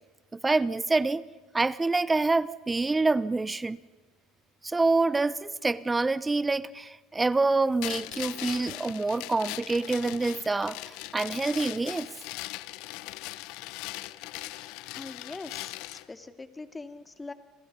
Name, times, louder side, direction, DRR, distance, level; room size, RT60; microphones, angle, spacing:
voice 1, 0.3-1.2 1.5-3.8 4.6-12.1, right 3 dB, 15° right, 19 dB, 0.8 m, -26 dB
sound 1, 7.8-16.1, left 19 dB, 70° left, 0.9 m, -39 dB
voice 2, 14.9-17.3, left 3 dB, 20° left, 9 dB, 2.3 m, -42 dB
28.5 x 27.0 x 5.4 m, 1.3 s
hypercardioid pair, 75°, 0 cm